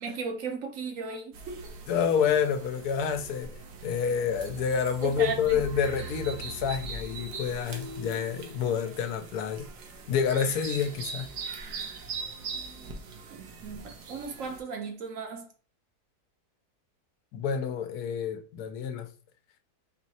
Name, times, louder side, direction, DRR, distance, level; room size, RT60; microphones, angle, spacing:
voice 1, 0.0-1.6 5.0-5.6 13.3-15.5, right 5 dB, 65° right, 0.9 m, -36 dB
sound 1, 1.3-14.6, right 5 dB, 90° right, 1.3 m, -41 dB
voice 2, 1.9-3.5 3.8-9.7 10.1-11.3 17.3-19.1, left 7 dB, 80° left, 1.1 m, -28 dB
sound 2, 5.7-9.6, left 1 dB, 55° left, 1.2 m, -47 dB
4.6 x 3.1 x 2.7 m
omnidirectional pair, 1.7 m